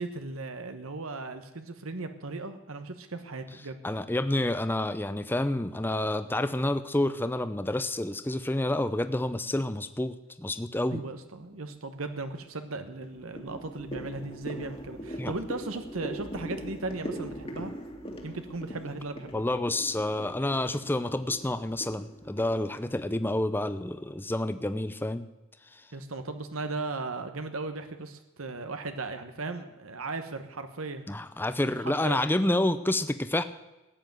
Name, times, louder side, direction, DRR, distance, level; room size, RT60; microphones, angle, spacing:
voice 1, 0.0-3.8 10.9-17.7 18.2-19.4 25.9-31.1 31.8-32.2, right 3 dB, 75° right, 8 dB, 1.2 m, -37 dB
voice 2, 3.8-11.0 15.2-15.3 19.3-25.3 25.7-25.8 31.1-33.4, left 1 dB, 10° left, 11 dB, 0.6 m, -29 dB
sound 1, 11.4-11.9 12.4-23.1, equal, 25° left, 2.0 m, -41 dB
14.5 x 9.7 x 7.8 m, 1.0 s
head